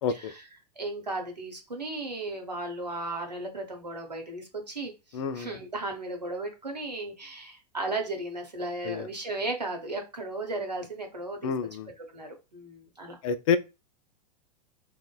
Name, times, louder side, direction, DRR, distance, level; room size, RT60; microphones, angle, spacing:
voice 1, 0.0-0.3 5.1-5.5 8.8-9.1 11.4-11.9 13.2-13.6, left 6 dB, 55° left, 0.4 m, -28 dB
voice 2, 0.8-11.5 12.1-13.2, right 2 dB, 90° right, 0.8 m, -35 dB
2.9 x 2.1 x 2.2 m
figure-of-eight pair, 95°, 21 cm